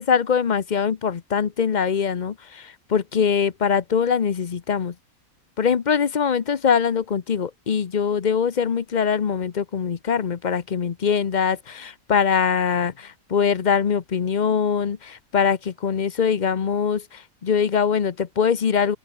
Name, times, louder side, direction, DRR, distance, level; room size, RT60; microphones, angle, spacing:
voice 1, 0.0-4.9 5.6-19.0, left 6 dB, 40° left, 0.7 m, -22 dB
open air
omnidirectional pair, 1.5 m